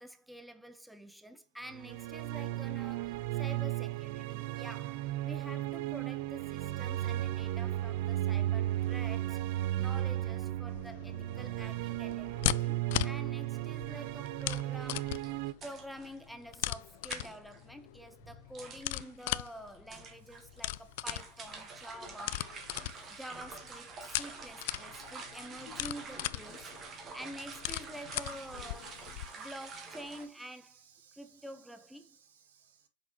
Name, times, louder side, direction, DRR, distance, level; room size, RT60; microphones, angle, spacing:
voice 1, 0.0-9.4 9.8-22.5 22.9-29.1 29.4-30.8 31.2-32.2, equal, ahead, 0.6 m, -48 dB
sound 1, 1.7-15.5, right 14 dB, 50° right, 0.4 m, -35 dB
sound 2, 10.7-29.3, left 17 dB, 55° left, 0.4 m, -39 dB
sound 3, 14.8-30.2, right 4 dB, 25° right, 1.8 m, -48 dB
voice 2, 26.5-26.8 28.5-32.9, right 7 dB, 70° right, 2.1 m, -63 dB
6.2 x 5.9 x 2.9 m
hypercardioid pair, 120°, 0 cm